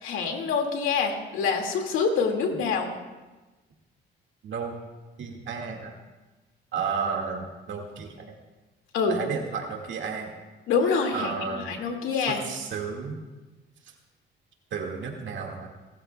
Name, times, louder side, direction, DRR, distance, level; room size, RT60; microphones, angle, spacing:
voice 1, 0.0-2.9 8.9-9.2 10.7-12.4, left 5 dB, 90° left, 3 dB, 2.1 m, -26 dB
voice 2, 4.4-4.7 5.2-5.9 6.7-8.3 9.1-10.3 11.1-11.8 12.2-13.2 14.7-15.7, right 5 dB, 70° right, 1 dB, 1.9 m, -32 dB
29.5 x 13.5 x 2.3 m, 1.2 s
cardioid pair, 90°, 20 cm